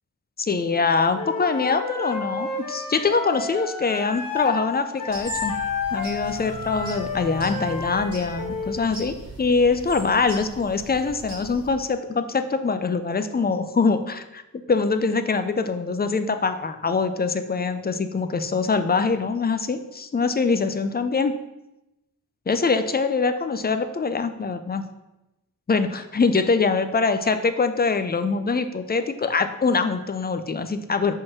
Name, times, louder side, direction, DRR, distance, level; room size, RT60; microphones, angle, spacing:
voice 1, 0.4-5.5 5.9-14.4 14.7-21.3 22.5-24.8 25.7-31.1, left 4 dB, 30° left, 9 dB, 0.5 m, -23 dB
Wind instrument woodwind instrument, 1.1-4.7 5.0-8.8, left 4 dB, 70° left, 0.7 m, -31 dB
sound 1, 5.1-11.7, right 2 dB, 50° right, 2.4 m, -39 dB
5.2 x 3.8 x 5.9 m, 0.96 s
wide cardioid pair, 110°, 34 cm